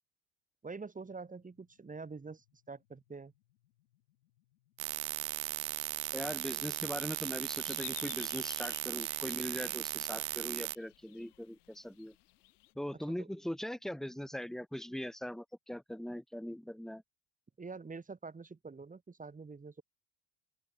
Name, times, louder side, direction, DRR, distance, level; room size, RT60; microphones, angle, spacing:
voice 1, 0.6-3.3 13.1-13.3 17.6-19.8, right 4 dB, 15° right, 1.8 m, -46 dB
sound 1, 1.0-14.2, left 14 dB, 75° left, 7.4 m, -76 dB
sound 2, 4.8-10.8, right 30 dB, 60° right, 0.6 m, -37 dB
sound 3, 5.3-12.7, left 20 dB, 55° left, 3.3 m, -55 dB
voice 2, 6.1-12.1 12.8-17.0, equal, ahead, 1.2 m, -41 dB
open air
figure-of-eight pair, 65°, 49 cm